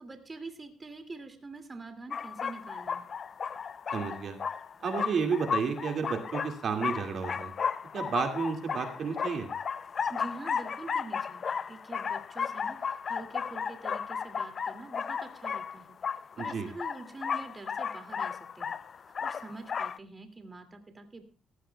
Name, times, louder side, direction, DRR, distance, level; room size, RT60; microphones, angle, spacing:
voice 1, 0.0-3.1 10.1-16.0 16.4-18.7 19.1-21.2, right 3 dB, 25° right, 7 dB, 2.4 m, -45 dB
sound 1, 2.1-20.0, left 6 dB, 50° left, 0.5 m, -34 dB
voice 2, 3.9-4.4 4.8-7.5 7.9-9.5 16.4-16.7, right 5 dB, 60° right, 4 dB, 2.2 m, -31 dB
18.0 x 15.5 x 2.3 m, 0.38 s
cardioid pair, 90°, 0 cm